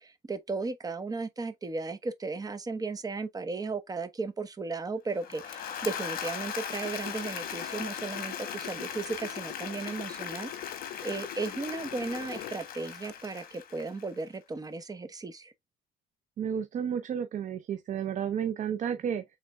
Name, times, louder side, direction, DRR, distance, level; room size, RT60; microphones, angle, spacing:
voice 1, 0.0-15.5, right 3 dB, 20° right, 0.9 m, -35 dB
Applause / Crowd, 5.1-14.3, left 8 dB, 60° left, 1.3 m, -39 dB
sound 1, 6.7-12.6 13.1-13.2, left 14 dB, 80° left, 0.5 m, -45 dB
voice 2, 16.4-19.2, right 8 dB, 45° right, 0.7 m, -32 dB
6.2 x 3.7 x 2.2 m
cardioid pair, 110°, 17 cm